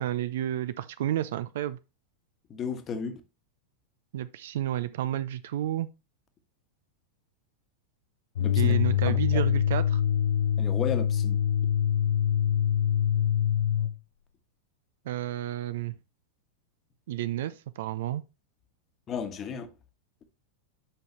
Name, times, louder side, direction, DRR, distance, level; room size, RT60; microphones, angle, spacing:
voice 1, 0.0-1.8 4.1-5.9 8.6-10.0 15.1-15.9 17.1-18.2, right 12 dB, 55° right, 0.4 m, -31 dB
voice 2, 2.5-3.2 8.4-8.8 9.1-9.4 10.6-11.5 19.1-19.7, left 6 dB, 25° left, 1.3 m, -34 dB
sound 1, 8.3-14.0, left 10 dB, 60° left, 0.4 m, -24 dB
9.0 x 5.4 x 3.2 m
figure-of-eight pair, 90°, 0 cm